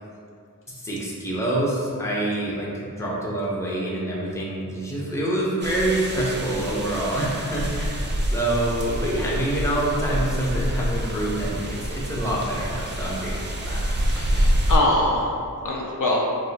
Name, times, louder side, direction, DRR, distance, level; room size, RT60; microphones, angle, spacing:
voice 1, 0.7-13.8, right 1 dB, 10° left, -6 dB, 0.6 m, -26 dB
sound 1, 5.6-14.8, equal, 35° right, 0.4 m, -27 dB
voice 2, 14.1-16.2, left 1 dB, 60° left, -3 dB, 0.5 m, -24 dB
2.5 x 2.0 x 3.9 m, 2.4 s
wide cardioid pair, 50°, 35 cm